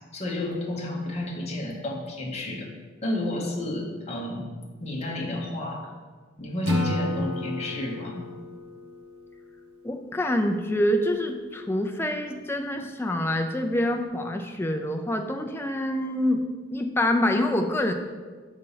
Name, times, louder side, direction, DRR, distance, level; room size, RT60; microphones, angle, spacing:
voice 1, 0.1-2.7 3.0-4.5 4.8-5.9 6.4-8.2, left 1 dB, 30° left, -1 dB, 0.9 m, -31 dB
Acoustic guitar / Strum, 6.7-9.8, left 1 dB, 85° right, 1.0 m, -30 dB
voice 2, 9.8-16.4 16.7-17.9, left 1 dB, 10° left, 4 dB, 0.4 m, -26 dB
5.4 x 4.0 x 5.5 m, 1.5 s
head